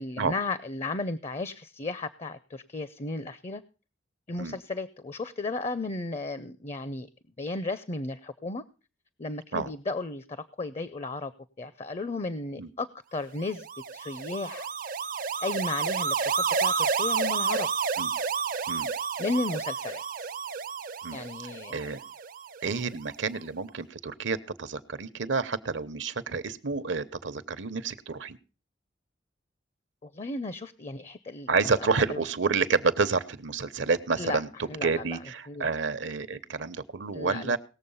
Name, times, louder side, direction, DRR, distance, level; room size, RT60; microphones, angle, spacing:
voice 1, 0.0-3.6 4.3-7.1 7.4-8.6 9.2-11.3 11.6-13.7 13.9-14.7 15.4-17.7 19.2-20.3 21.1-21.8 30.0-31.5 31.8-32.2 34.2-34.4 34.7-35.2 35.5-35.7 37.1-37.6, left 3 dB, 35° left, 15 dB, 0.5 m, -34 dB
sound 1, 13.5-22.8, right 6 dB, 50° right, 0.5 m, -30 dB
voice 2, 22.6-28.4 31.5-37.6, right 4 dB, 80° right, 13 dB, 0.9 m, -29 dB
18.5 x 7.2 x 5.5 m, 0.35 s
head